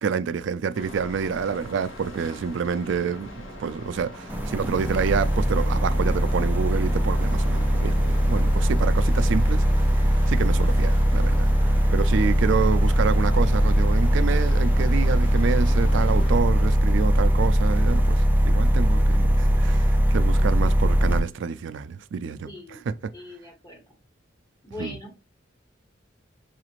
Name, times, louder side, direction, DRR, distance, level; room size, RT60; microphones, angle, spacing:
voice 1, 0.0-9.7 10.1-11.5 11.9-22.5 22.9-23.0 24.8-25.0, right 6 dB, 65° right, 0.4 m, -28 dB
sound 1, 0.7-16.4, equal, 80° left, 1.2 m, -40 dB
sound 2, 4.3-21.2, equal, 10° right, 0.5 m, -20 dB
voice 2, 22.5-22.8 23.1-23.8 24.6-25.2, left 2 dB, 25° left, 1.3 m, -41 dB
5.7 x 2.4 x 3.0 m
head